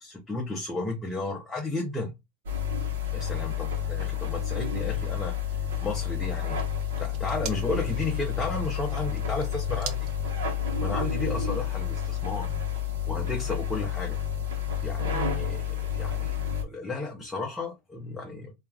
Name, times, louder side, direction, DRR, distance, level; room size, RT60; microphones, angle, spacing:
voice 1, 0.0-2.1 3.1-6.6 7.0-10.1 10.8-12.6 13.1-14.2 14.8-16.3 16.6-18.5, left 3 dB, 10° left, 0.6 m, -33 dB
sound 1, 2.5-16.6, left 8 dB, 90° right, 0.8 m, -30 dB
sound 2, 6.2-11.3, right 9 dB, 45° right, 0.5 m, -45 dB
2.4 x 2.3 x 3.3 m
supercardioid pair, 140°, 0 cm